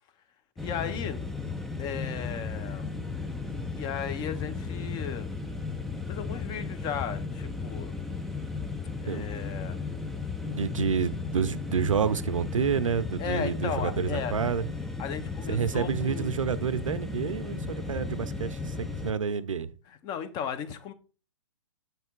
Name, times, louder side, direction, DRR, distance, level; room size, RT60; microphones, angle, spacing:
voice 1, 0.6-1.2 1.8-2.9 3.7-5.3 6.1-7.9 9.0-9.8 13.2-14.3 15.0-16.3 20.0-20.9, left 8 dB, 25° left, 0.7 m, -35 dB
sound 1, 0.6-19.1, left 4 dB, ahead, 0.3 m, -35 dB
voice 2, 10.5-14.7 15.5-19.7, right 6 dB, 90° right, 0.6 m, -29 dB
7.4 x 3.3 x 4.5 m
hypercardioid pair, 130°, 16 cm